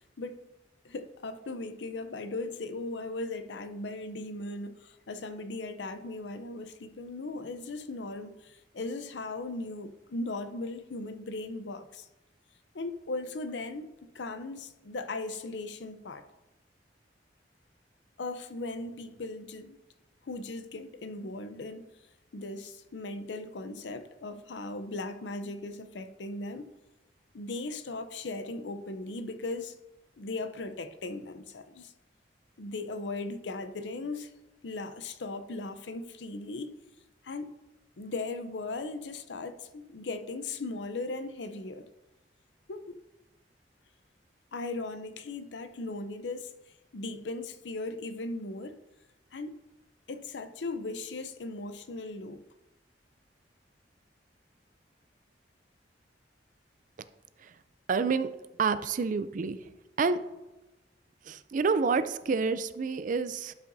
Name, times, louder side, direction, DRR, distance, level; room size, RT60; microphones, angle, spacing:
voice 1, 0.8-12.1 12.7-16.2 18.2-19.8 20.2-21.9 22.3-26.7 27.3-29.8 30.2-31.9 32.6-34.3 34.6-36.7 37.2-37.5 38.0-41.9 42.7-43.0 44.5-46.5 46.9-48.8 49.3-49.6 50.1-52.4, left 2 dB, 80° left, 0.6 m, -38 dB
voice 2, 57.9-58.3 58.6-59.6 60.0-60.2 61.3-63.5, right 4 dB, 45° right, 0.4 m, -28 dB
11.5 x 5.6 x 2.6 m
head